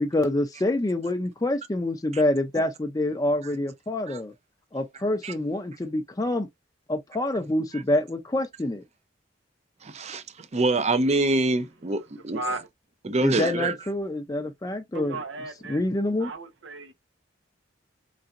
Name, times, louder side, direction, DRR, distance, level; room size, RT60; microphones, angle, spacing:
voice 1, 0.0-4.3 4.7-6.5 6.9-8.8 13.2-15.2 15.7-16.3, left 1 dB, 20° left, 0.5 m, -26 dB
voice 2, 9.8-12.5 13.0-13.8, right 2 dB, 35° right, 0.6 m, -26 dB
voice 3, 12.3-12.7 14.9-15.8 16.2-16.9, right 2 dB, 85° right, 1.0 m, -34 dB
3.9 x 3.3 x 2.5 m
head